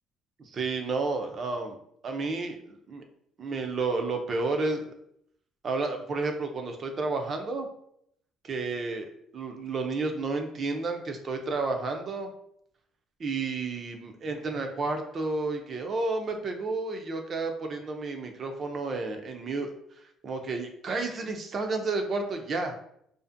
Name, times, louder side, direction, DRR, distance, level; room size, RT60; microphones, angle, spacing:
voice 1, 0.4-1.8 2.0-3.0 3.4-4.9 5.6-7.7 8.4-12.3 13.2-19.7 20.2-22.7, right 3 dB, 35° right, 5 dB, 0.3 m, -31 dB
2.5 x 2.4 x 2.4 m, 0.71 s
cardioid pair, 150°, 0 cm